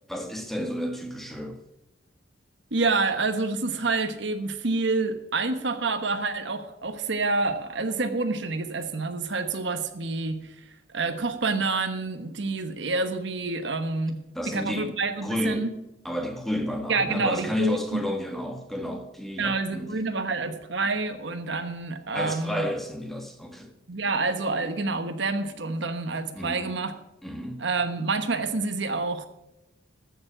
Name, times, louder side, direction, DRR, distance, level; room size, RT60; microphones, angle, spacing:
voice 1, 0.1-1.6 14.3-14.9 15.2-15.7 16.0-19.9 22.1-23.7 26.3-26.8 27.2-27.6, left 1 dB, ahead, 4 dB, 1.4 m, -31 dB
voice 2, 2.7-10.6 10.9-15.7 16.9-18.0 19.4-22.7 23.9-26.9 27.6-29.3, right 3 dB, 65° right, 9 dB, 1.1 m, -28 dB
14.5 x 7.2 x 6.1 m, 0.92 s
head